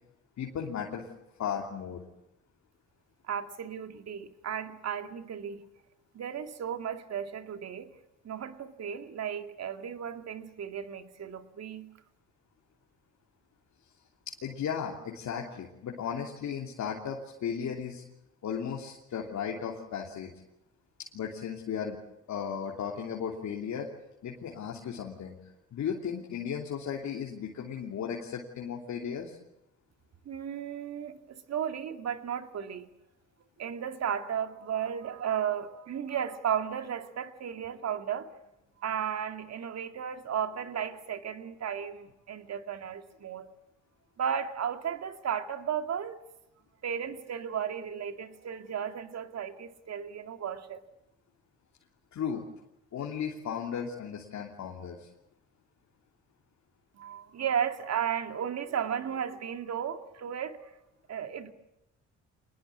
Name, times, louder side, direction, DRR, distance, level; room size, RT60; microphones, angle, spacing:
voice 1, 0.4-1.1 1.4-2.0 14.3-18.0 18.4-20.3 21.1-22.0 22.3-23.9 24.2-25.4 25.7-29.4 52.1-52.4 52.9-55.1, left 7 dB, 65° left, 3.1 m, -35 dB
voice 2, 3.3-5.6 6.1-7.9 8.2-11.9 30.3-32.9 33.6-38.3 38.8-43.5 44.2-46.2 46.8-50.8 56.9-60.7 61.1-61.5, right 8 dB, 60° right, 2.3 m, -34 dB
25.5 x 20.5 x 8.5 m
cardioid pair, 90°, 30 cm